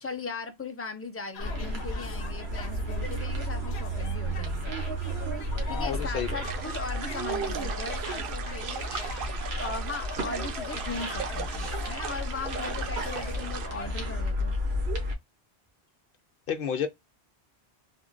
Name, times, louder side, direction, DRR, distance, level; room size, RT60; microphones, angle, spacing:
voice 1, 0.0-4.7 5.7-9.1 9.5-14.6, left 4 dB, 20° left, 0.4 m, -38 dB
sound 1, 1.3-14.0, left 6 dB, 90° left, 0.9 m, -44 dB
sound 2, 1.4-15.1, equal, 85° right, 1.3 m, -33 dB
voice 2, 5.7-6.4 16.5-16.9, left 8 dB, 65° left, 0.8 m, -31 dB
sound 3, 6.4-13.7, right 6 dB, 65° right, 0.7 m, -37 dB
3.6 x 2.1 x 2.5 m
omnidirectional pair, 1.1 m